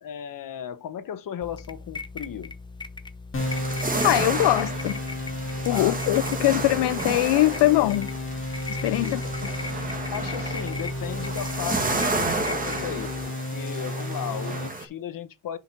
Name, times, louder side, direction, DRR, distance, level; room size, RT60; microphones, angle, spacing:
voice 1, 0.0-2.6 5.7-6.0 8.8-9.2 10.1-15.6, left 9 dB, 45° left, 1.1 m, -36 dB
sound 1, 1.4-13.3, left 3 dB, 10° left, 0.5 m, -40 dB
sound 2, 3.3-14.7, left 1 dB, 25° left, 1.9 m, -33 dB
sound 3, 3.4-14.8, right 3 dB, 20° right, 1.7 m, -32 dB
voice 2, 4.0-5.0 5.7-8.1 8.7-9.2, left 17 dB, 65° left, 0.5 m, -22 dB
6.0 x 5.2 x 5.8 m
cardioid pair, 130°, 44 cm